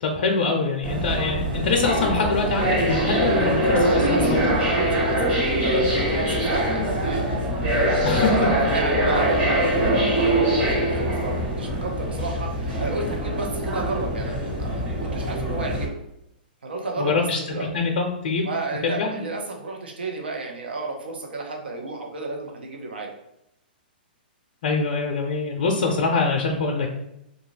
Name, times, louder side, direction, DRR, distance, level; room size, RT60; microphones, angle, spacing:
voice 1, 0.0-3.9 4.2-4.4 8.0-8.5 17.0-17.4 17.7-18.5 18.8-19.2 24.6-26.9, left 4 dB, 60° left, 1 dB, 0.5 m, -24 dB
sound 1, 0.8-15.8, equal, 35° right, 1.4 m, -23 dB
voice 2, 3.8-7.2 7.6-15.9 16.6-17.1 17.5-17.7 18.4-23.1, right 3 dB, 80° right, 1 dB, 0.7 m, -32 dB
2.6 x 2.3 x 3.1 m, 0.82 s
hypercardioid pair, 125°, 5 cm